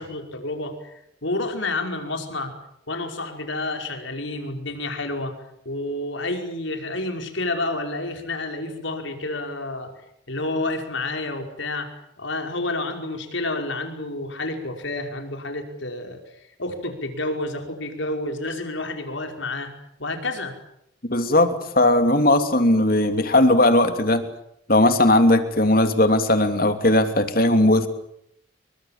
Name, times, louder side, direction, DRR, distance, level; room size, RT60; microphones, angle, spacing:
voice 1, 0.0-2.5 2.9-5.3 5.7-9.9 10.3-11.9 12.2-16.2 16.6-19.7 20.0-20.6, left 2 dB, 70° left, 5 dB, 5.3 m, -29 dB
voice 2, 21.1-24.3 24.7-27.9, left 1 dB, 45° left, 7 dB, 3.1 m, -18 dB
30.0 x 24.5 x 7.5 m, 0.76 s
head